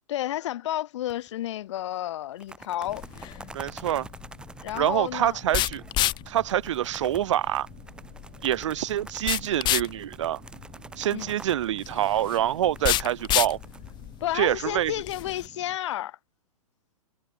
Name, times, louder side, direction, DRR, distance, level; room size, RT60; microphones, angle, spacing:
voice 1, 0.1-3.0 4.6-5.4 11.1-11.3 14.2-16.2, left 13 dB, 50° left, 2.5 m, -31 dB
sound 1, 1.1-1.5 1.8-1.9 2.2-14.7, right 2 dB, 5° right, 1.1 m, -47 dB
sound 2, 2.8-15.8, right 16 dB, 25° right, 6.9 m, -52 dB
sound 3, 2.9-15.5, left 15 dB, 25° left, 1.3 m, -31 dB
voice 2, 3.5-4.1 4.7-5.8 6.3-7.7 8.4-10.4 11.0-13.6 14.3-14.9, right 12 dB, 50° right, 1.0 m, -26 dB
figure-of-eight pair, 115°, 19 cm